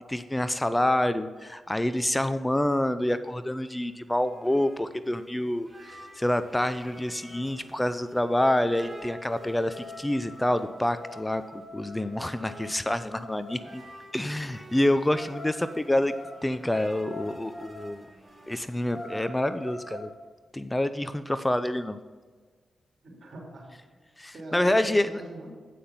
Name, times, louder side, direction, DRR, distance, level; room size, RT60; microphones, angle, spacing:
voice 1, 0.1-13.8 14.1-16.1 16.4-18.1 18.5-20.1 20.5-22.0 24.2-25.1, left 1 dB, 15° left, 12 dB, 0.5 m, -27 dB
sound 1, 3.8-19.1, right 1 dB, 20° right, 2.4 m, -51 dB
sound 2, 5.9-6.0 6.3-6.6 6.9-13.8 15.1-17.9 18.3-18.4 18.8-20.1, left 1 dB, 35° left, 2.0 m, -44 dB
voice 2, 23.0-23.7 24.3-25.5, right 1 dB, 60° right, -1 dB, 3.0 m, -42 dB
8.3 x 5.9 x 5.6 m, 1.5 s
supercardioid pair, 45°, 0 cm